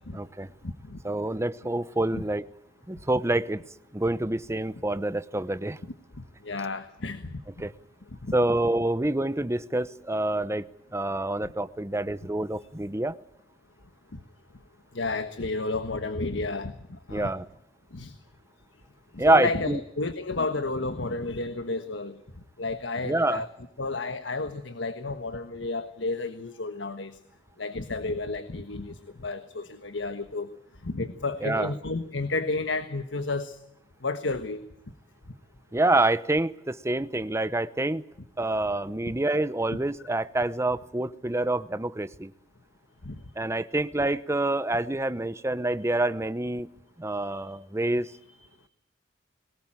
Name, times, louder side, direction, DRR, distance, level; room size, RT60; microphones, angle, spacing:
voice 1, 0.1-0.5 1.0-2.5 2.9-3.6 3.9-5.8 7.6-7.7 8.3-10.6 10.9-13.2 17.1-17.5 19.2-19.8 23.0-23.4 31.4-31.7 35.7-38.0 38.4-42.3 43.4-46.7 47.0-48.1, right 2 dB, 15° right, 14 dB, 0.8 m, -27 dB
voice 2, 0.6-1.0 2.1-2.2 6.4-7.4 8.2-8.3 14.9-16.7 17.1-17.3 17.9-18.2 19.1-22.2 22.6-23.5 23.8-27.2 27.6-30.5 30.8-33.6 34.0-34.6 39.0-39.1 43.0-43.2 47.4-47.5 48.4-48.5, left 3 dB, 85° left, 10 dB, 1.4 m, -31 dB
22.0 x 19.5 x 8.9 m, 0.80 s
head